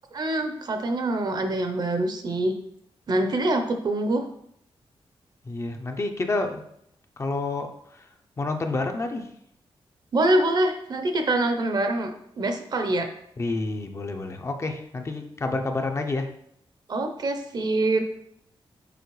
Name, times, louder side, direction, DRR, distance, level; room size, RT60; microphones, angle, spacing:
voice 1, 0.1-2.6 3.1-4.3 10.1-13.1 16.9-18.1, right 1 dB, 45° right, 6 dB, 0.7 m, -25 dB
voice 2, 5.4-6.6 7.2-8.1 8.4-9.3 13.4-16.3, left 2 dB, 30° left, 5 dB, 0.5 m, -29 dB
6.9 x 4.4 x 3.1 m, 0.72 s
wide cardioid pair, 165°, 10 cm